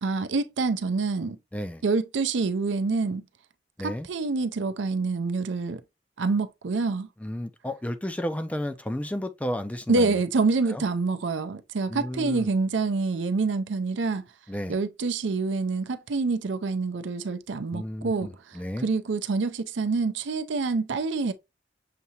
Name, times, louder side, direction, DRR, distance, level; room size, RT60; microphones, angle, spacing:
voice 1, 0.0-1.4 1.8-3.2 3.8-5.8 6.2-7.1 9.9-14.3 14.7-21.3, right 4 dB, 80° right, 0.5 m, -27 dB
voice 2, 1.5-1.8 3.8-4.1 7.2-10.2 10.7-10.8 11.9-12.5 14.5-14.8 17.7-18.9, equal, 5° left, 0.3 m, -32 dB
6.7 x 2.8 x 2.8 m
head